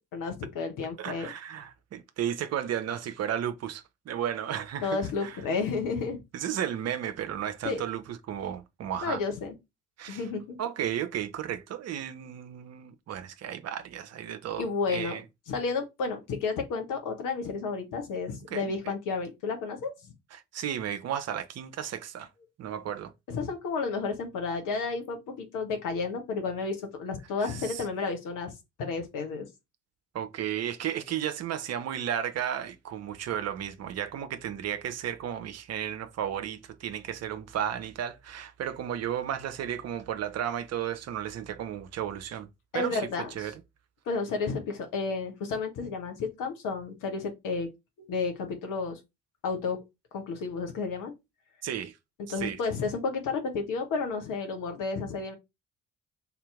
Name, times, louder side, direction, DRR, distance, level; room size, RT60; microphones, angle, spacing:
voice 1, 0.1-1.3 4.8-6.2 7.6-7.8 9.0-9.5 10.1-10.6 14.6-15.2 15.5-20.1 23.3-28.5 28.8-29.5 42.7-43.5 44.1-47.7 48.1-49.0 49.4-49.8 50.1-51.1 52.3-55.3, left 4 dB, 55° left, 1.2 m, -32 dB
voice 2, 1.0-5.4 6.3-9.2 10.0-10.2 10.6-15.2 18.5-18.9 20.3-22.3 22.6-23.1 27.4-27.9 30.1-42.5 42.7-43.1 43.3-43.5 51.6-52.0 52.4-52.6, right 10 dB, 40° right, 0.7 m, -34 dB
4.1 x 2.8 x 3.4 m
figure-of-eight pair, 45°, 38 cm